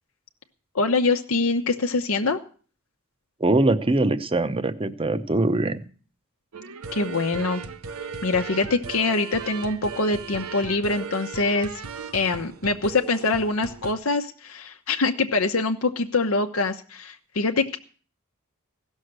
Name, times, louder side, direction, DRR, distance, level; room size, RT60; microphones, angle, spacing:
voice 1, 0.7-2.4 6.9-7.6 8.2-11.7 12.1-17.8, left 3 dB, 70° left, 4 dB, 0.9 m, -24 dB
voice 2, 3.4-5.9, right 2 dB, 25° right, 11 dB, 0.7 m, -22 dB
sound 1, 6.5-13.9, right 5 dB, 80° right, 0.8 m, -37 dB
16.0 x 6.5 x 7.9 m, 0.41 s
head